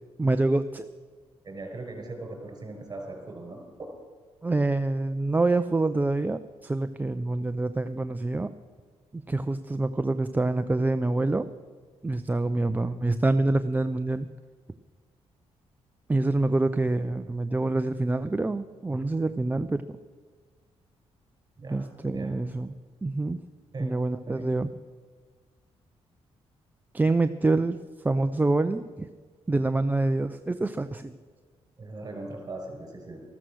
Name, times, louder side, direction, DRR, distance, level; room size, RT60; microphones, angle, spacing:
voice 1, 0.2-0.8 4.4-8.5 9.1-11.5 12.0-14.3 16.1-20.0 21.7-22.7 23.0-23.4 23.8-24.7 26.9-27.8 28.0-29.1 29.5-31.1, right 2 dB, 15° right, 9 dB, 0.5 m, -26 dB
voice 2, 1.4-3.6 21.6-22.4 23.7-24.0 24.3-24.5 31.8-33.2, right 2 dB, 35° right, 2 dB, 5.4 m, -39 dB
14.0 x 13.0 x 6.3 m, 1.5 s
cardioid pair, 90°, 11 cm